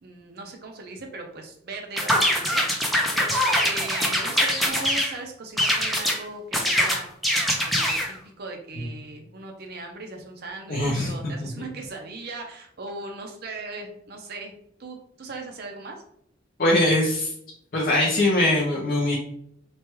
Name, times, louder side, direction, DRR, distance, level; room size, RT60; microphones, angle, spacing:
voice 1, 0.0-2.6 3.1-7.1 7.7-14.5 14.8-16.0, right 3 dB, 55° right, 3 dB, 0.6 m, -38 dB
sound 1, 2.0-5.1 5.6-6.2 6.5-8.1, equal, ahead, 0.4 m, -23 dB
voice 2, 10.7-11.5 16.6-17.3 17.7-19.1, left 1 dB, 50° left, -2 dB, 0.5 m, -22 dB
3.2 x 2.2 x 2.9 m, 0.70 s
head